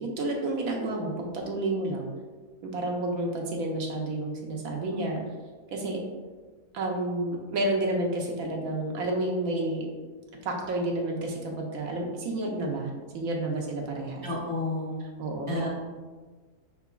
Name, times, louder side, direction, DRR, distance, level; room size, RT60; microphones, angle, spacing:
voice 1, 0.0-2.1 2.6-5.2 5.7-6.0 6.7-9.9 10.4-14.3 15.2-15.6, right 2 dB, 75° right, 0 dB, 1.1 m, -30 dB
voice 2, 14.2-15.0 15.5-15.7, left 2 dB, 20° left, -6 dB, 0.6 m, -31 dB
5.7 x 2.9 x 2.3 m, 1.4 s
omnidirectional pair, 1.6 m